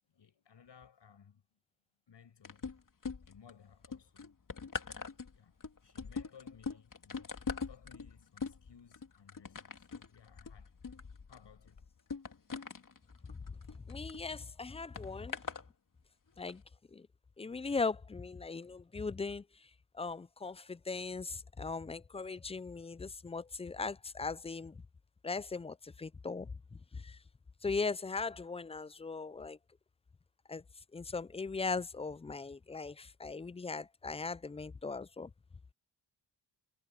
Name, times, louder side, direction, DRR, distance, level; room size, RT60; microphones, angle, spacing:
voice 1, 0.1-1.4 2.1-2.7 3.2-4.4 5.0-5.5 5.8-7.4 7.7-10.7 11.3-12.0, left 7 dB, 65° left, 6.8 m, -60 dB
sound 1, 2.4-3.5 3.8-14.2 15.0-15.6 16.4-16.5, left 5 dB, 45° left, 2.9 m, -43 dB
voice 2, 13.9-15.4 16.4-16.6 16.9-17.1 17.4-19.4 19.9-24.8 25.2-26.5 26.9-27.2 27.6-29.6 30.5-30.6 30.9-35.3, left 4 dB, 15° left, 0.4 m, -39 dB
cardioid pair, 70°, 46 cm